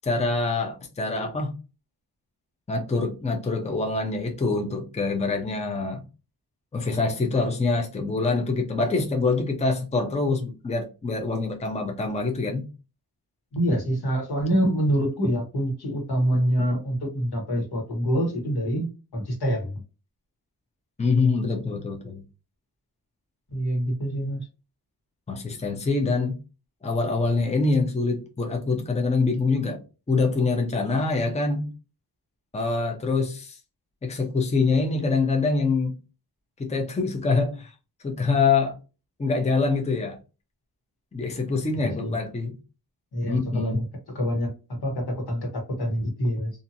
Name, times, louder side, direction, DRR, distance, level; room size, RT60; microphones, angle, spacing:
voice 1, 0.0-1.5 2.7-6.0 6.7-12.7 21.0-22.2 25.3-26.4 26.8-29.8 30.1-31.7 32.5-33.6 34.0-35.9 36.6-37.7 38.0-38.8 39.2-40.2 41.1-42.6 43.3-43.8, left 3 dB, 15° left, 0.6 m, -25 dB
voice 2, 13.5-19.8 23.5-24.4 41.8-42.1 43.1-44.5 44.8-46.5, equal, 80° left, 1.3 m, -26 dB
2.8 x 2.5 x 2.6 m
wide cardioid pair, 145°, 38 cm